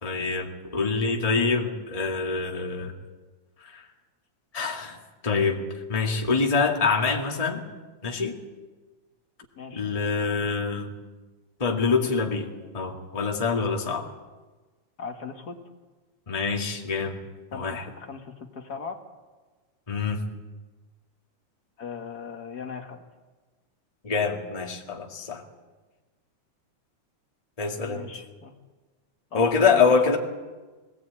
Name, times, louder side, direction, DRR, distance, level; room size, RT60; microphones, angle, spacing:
voice 1, 0.0-2.9 3.6-3.8 4.5-5.6 5.9-7.6 8.0-8.4 9.7-10.9 11.6-12.5 12.7-14.0 16.3-17.2 17.5-17.8 19.9-20.2 24.0-25.4 27.6-28.1 29.3-30.2, left 4 dB, 15° left, 1 dB, 1.7 m, -25 dB
voice 2, 15.0-15.6 17.5-19.0 21.8-23.0 27.8-28.5 29.3-30.2, left 5 dB, 40° left, 4 dB, 1.7 m, -38 dB
21.0 x 17.0 x 8.8 m, 1.3 s
omnidirectional pair, 3.4 m